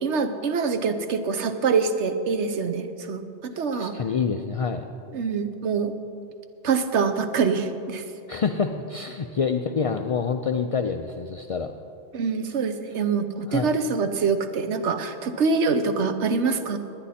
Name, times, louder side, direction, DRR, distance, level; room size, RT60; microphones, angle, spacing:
voice 1, 0.0-3.9 5.1-5.9 6.6-8.0 12.1-16.8, right 5 dB, 85° right, 9 dB, 1.1 m, -25 dB
voice 2, 3.7-4.8 8.3-11.7 13.5-13.7, left 5 dB, 55° left, 6 dB, 0.4 m, -27 dB
20.0 x 9.8 x 4.2 m, 2.6 s
omnidirectional pair, 1.1 m